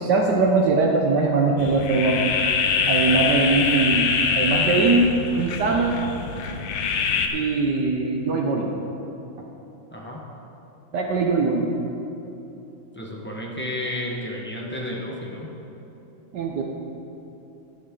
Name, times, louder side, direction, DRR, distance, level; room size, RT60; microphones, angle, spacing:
voice 1, 0.0-2.4 2.9-6.0 7.3-8.7 10.9-11.7 16.3-16.6, right 3 dB, 65° right, 1 dB, 1.2 m, -21 dB
sound 1, 1.6-7.3, left 5 dB, 65° left, 1.3 m, -24 dB
voice 2, 9.9-10.2 12.9-15.5, left 1 dB, 10° left, -3 dB, 0.8 m, -32 dB
12.0 x 10.5 x 3.8 m, 3.0 s
omnidirectional pair, 2.3 m